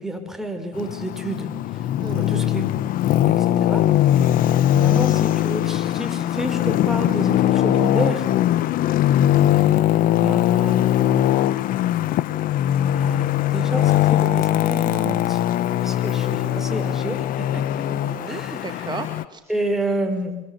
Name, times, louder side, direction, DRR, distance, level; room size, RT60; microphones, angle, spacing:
voice 1, 0.0-1.5 2.1-2.7 3.3-3.9 4.7-8.3 10.2-10.8 12.9-15.4 15.8-17.7 18.3-18.7 19.5-20.4, right 1 dB, ahead, 5 dB, 6.1 m, -29 dB
Traffic noise roadway noise, 0.7-19.2, left 12 dB, 50° left, 1.3 m, -20 dB
voice 2, 2.0-2.5 9.5-9.8 16.2-16.6 17.9-19.4, right 5 dB, 25° right, 6 dB, 2.3 m, -36 dB
27.0 x 23.5 x 8.7 m, 0.99 s
hypercardioid pair, 90°, 18 cm